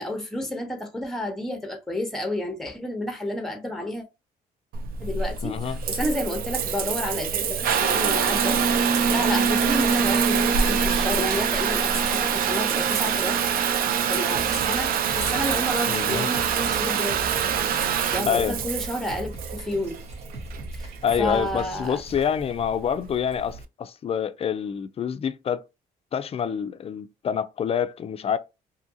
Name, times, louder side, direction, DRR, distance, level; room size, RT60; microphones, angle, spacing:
voice 1, 0.0-4.0 5.0-13.4 14.1-17.2 18.1-20.0 20.7-20.9 21.2-22.0, left 1 dB, ahead, 0.8 m, -30 dB
Water tap faucet / Bathtub (filling or washing) / Trickle dribble, 4.7-23.6, right 7 dB, 65° right, 0.4 m, -25 dB
voice 2, 5.4-5.8 15.9-16.3 18.2-18.6 21.0-25.6 26.1-28.4, left 7 dB, 40° left, 0.3 m, -27 dB
sound 1, 14.3-22.3, right 2 dB, 45° right, 1.1 m, -40 dB
2.7 x 2.5 x 2.6 m
cardioid pair, 85°, 16 cm